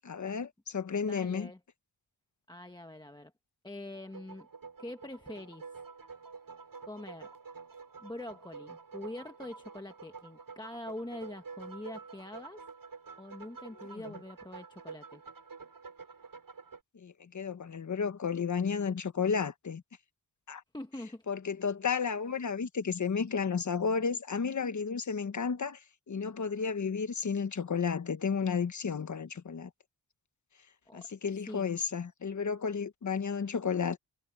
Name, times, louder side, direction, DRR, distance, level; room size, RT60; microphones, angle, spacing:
voice 1, 0.0-1.5 13.9-14.0 16.9-19.8 20.5-20.6 21.3-25.8 26.1-29.7 30.9-34.0, left 6 dB, 45° left, 1.3 m, -32 dB
voice 2, 1.0-1.6 2.5-3.3 3.6-4.5 4.8-5.7 6.9-7.3 8.0-12.6 13.2-15.2 20.7-21.2 30.9-31.1 31.4-31.7, left 1 dB, 10° left, 1.1 m, -44 dB
sound 1, 3.9-16.8, right 5 dB, 55° right, 7.6 m, -48 dB
wide cardioid pair, 115°, 42 cm